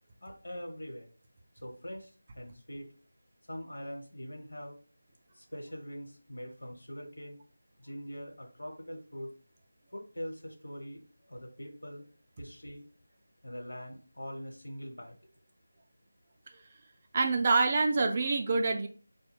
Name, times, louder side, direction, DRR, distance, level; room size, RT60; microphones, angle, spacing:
voice 1, 0.2-1.1 1.6-2.9 3.5-4.8 5.3-7.4 7.8-9.3 9.9-12.1 12.4-12.8 13.4-15.2, equal, 65° left, 2 dB, 1.0 m, -43 dB
voice 2, 17.1-18.9, right 3 dB, 30° right, 4 dB, 0.4 m, -26 dB
4.7 x 2.1 x 3.5 m, 0.39 s
figure-of-eight pair, 165°, 0 cm